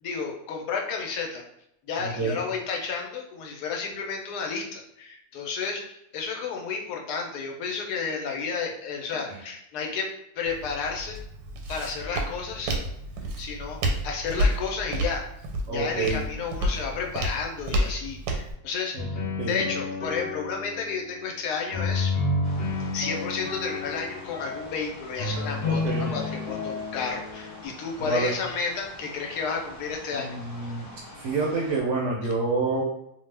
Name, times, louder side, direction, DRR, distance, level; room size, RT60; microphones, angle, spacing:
voice 1, 0.0-1.4 1.9-11.2 11.7-12.8 13.4-15.3 15.7-19.2 19.4-22.1 22.9-30.7 32.2-32.3, left 5 dB, 80° left, 1 dB, 1.1 m, -32 dB
voice 2, 2.0-2.4 9.3-9.4 15.7-16.2 18.9-19.1 19.4-19.6 25.6-26.1 28.0-28.3 30.1-30.9 31.2-32.8, right 3 dB, 70° right, -3 dB, 0.7 m, -28 dB
Walk footsteps, 10.5-18.5, equal, 90° right, 1.2 m, -30 dB
sound 1, 19.0-21.0 21.7-24.7 25.2-27.6, left 3 dB, 65° left, 0.6 m, -30 dB
sound 2, 22.4-31.8, left 1 dB, 30° left, 0.7 m, -45 dB
2.7 x 2.1 x 3.2 m, 0.80 s
omnidirectional pair, 1.7 m